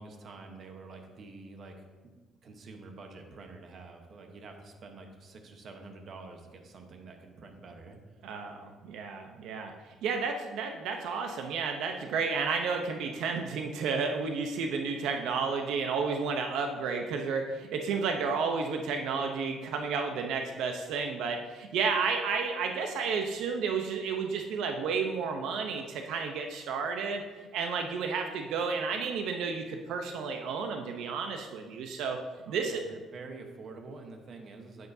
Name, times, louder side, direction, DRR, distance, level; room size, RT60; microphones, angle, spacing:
voice 1, 0.0-2.1 2.4-8.0 32.5-34.9, right 3 dB, 40° right, 4 dB, 1.0 m, -47 dB
voice 2, 8.2-27.2 27.5-32.2 32.5-32.8, right 5 dB, 80° right, 4 dB, 0.7 m, -32 dB
9.5 x 9.4 x 2.7 m, 1.3 s
cardioid pair, 165°, 0 cm